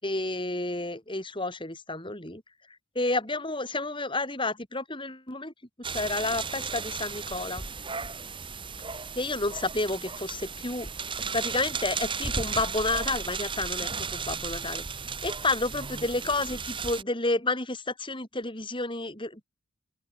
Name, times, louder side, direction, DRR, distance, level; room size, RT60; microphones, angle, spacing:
voice 1, 0.0-2.4 3.0-5.5 5.9-7.6 9.2-10.9 11.3-14.8 15.2-19.4, left 2 dB, 25° left, 5.7 m, -30 dB
sound 1, 5.8-17.0, right 5 dB, 25° right, 1.9 m, -35 dB
open air
head